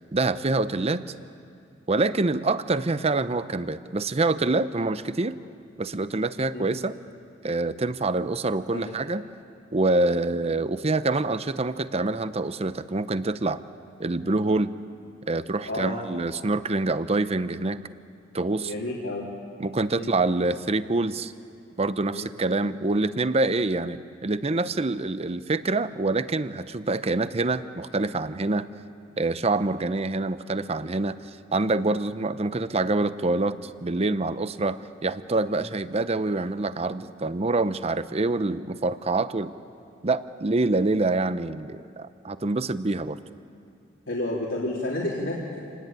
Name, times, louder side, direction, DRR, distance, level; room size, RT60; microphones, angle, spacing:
voice 1, 0.1-1.0 1.9-5.4 5.8-7.0 7.4-9.2 9.7-13.6 14.0-14.8 15.3-17.8 18.3-18.7 19.6-21.3 21.8-28.7 29.2-31.2 31.5-39.5 40.0-43.2, right 2 dB, 30° right, 13 dB, 0.7 m, -26 dB
voice 2, 15.7-16.0 18.6-19.3 19.9-20.1 22.1-22.3 44.1-45.6, left 1 dB, 80° left, -5 dB, 3.5 m, -30 dB
27.5 x 19.5 x 9.1 m, 2.5 s
head